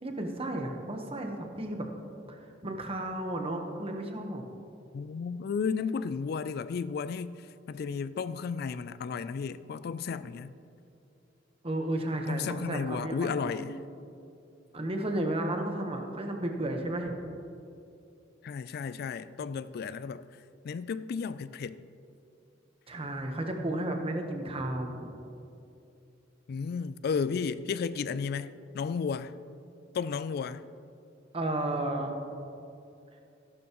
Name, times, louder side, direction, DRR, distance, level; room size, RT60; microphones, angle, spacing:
voice 1, 0.0-1.8 2.3-4.4 11.6-13.7 14.7-17.1 22.9-25.1 31.3-32.1, right 1 dB, 30° right, 1.1 m, -33 dB
voice 2, 4.9-10.5 12.3-13.7 18.4-20.3 20.6-21.9 26.5-29.3 29.9-30.7, left 5 dB, 55° left, 0.3 m, -33 dB
15.5 x 11.5 x 3.0 m
head